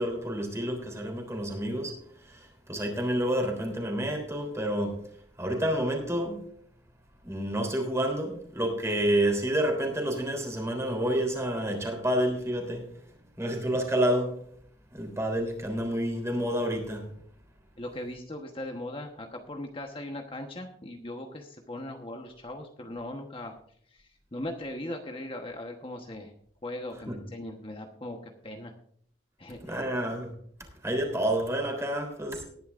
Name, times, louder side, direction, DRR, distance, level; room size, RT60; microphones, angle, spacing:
voice 1, 0.0-5.0 5.4-6.4 7.2-12.9 13.4-14.4 14.9-17.1 27.1-27.2 29.6-30.3 30.8-32.4, right 1 dB, 15° right, 2 dB, 3.4 m, -29 dB
voice 2, 17.8-23.5 23.9-26.3 26.6-28.7 29.4-29.9, left 1 dB, 30° left, 3 dB, 1.1 m, -39 dB
19.0 x 11.0 x 2.5 m, 0.63 s
head